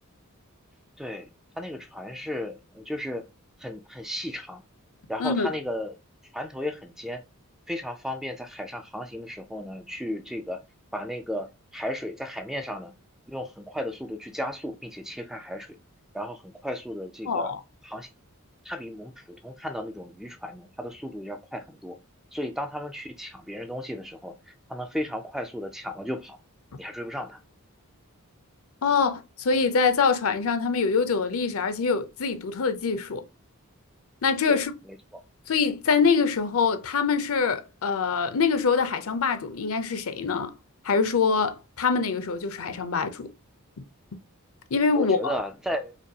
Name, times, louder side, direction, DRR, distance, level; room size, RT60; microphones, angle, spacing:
voice 1, 1.0-1.3 1.6-3.3 3.6-4.6 5.1-5.9 6.3-7.2 7.7-10.6 10.9-12.9 13.3-15.7 16.1-17.5 17.8-18.1 18.7-19.1 19.4-22.0 22.3-24.3 24.7-26.4 26.8-27.4 34.5-34.6 44.9-46.0, equal, ahead, 0.3 m, -34 dB
voice 2, 17.3-17.6 28.8-33.2 34.2-34.7 35.5-40.5 40.8-43.3 44.7-45.4, left 5 dB, 65° left, 0.6 m, -24 dB
5.0 x 2.3 x 2.7 m
head